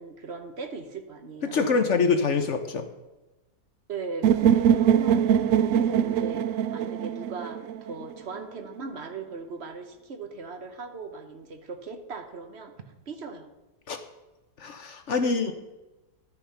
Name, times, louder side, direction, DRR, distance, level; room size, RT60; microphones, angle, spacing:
voice 1, 0.0-1.8 3.9-12.7 13.1-13.5 15.2-15.5, right 4 dB, 45° right, 6 dB, 1.2 m, -38 dB
voice 2, 1.4-2.9 13.9-14.0 14.6-15.5, left 4 dB, 50° left, 7 dB, 1.0 m, -25 dB
sound 1, 4.2-8.2, right 9 dB, 70° right, 0.7 m, -22 dB
12.5 x 6.6 x 5.7 m, 1.1 s
omnidirectional pair, 1.8 m